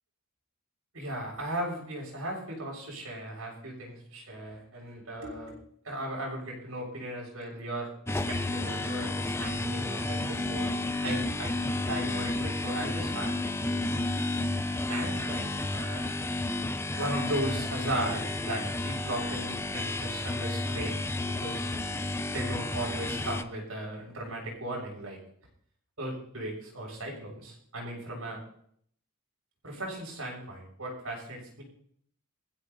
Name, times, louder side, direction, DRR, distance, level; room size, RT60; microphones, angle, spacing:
voice 1, 0.9-5.6 5.8-10.7 11.0-14.0 14.9-16.0 17.0-20.9 21.4-21.7 22.3-25.2 26.0-28.4 29.6-31.6, right 1 dB, 75° right, -2 dB, 7.1 m, -37 dB
sound 1, 8.1-23.4, left 2 dB, 10° left, 0.5 m, -31 dB
22.0 x 15.0 x 2.8 m, 0.66 s
head